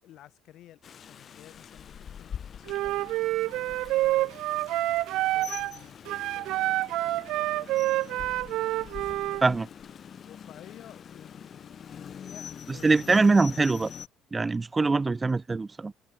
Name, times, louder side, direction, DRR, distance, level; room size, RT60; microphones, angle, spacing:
voice 1, 0.0-4.4 5.2-9.6 10.2-13.8, left 13 dB, 65° left, 7.5 m, -54 dB
Rain, 0.8-14.1, left 8 dB, 45° left, 4.3 m, -44 dB
Wind instrument woodwind instrument, 2.7-5.8 6.1-9.4, right 17 dB, 75° right, 0.7 m, -28 dB
voice 2, 12.8-13.9 14.3-15.9, right 3 dB, 20° right, 0.5 m, -23 dB
cardioid pair, 90°, 0 cm